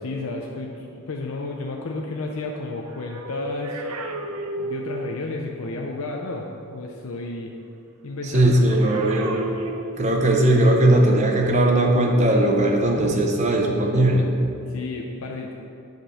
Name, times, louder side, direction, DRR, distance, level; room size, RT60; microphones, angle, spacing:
voice 1, 0.0-3.8 4.6-7.5 8.0-9.2 14.7-15.7, left 2 dB, 70° left, 0 dB, 0.6 m, -32 dB
sound 1, 2.6-5.3 8.5-10.4 11.3-11.5, right 2 dB, 85° right, 0.7 m, -33 dB
voice 2, 8.3-9.4 10.0-14.3, right 1 dB, 30° right, 1 dB, 0.9 m, -18 dB
7.7 x 5.3 x 6.3 m, 2.6 s
head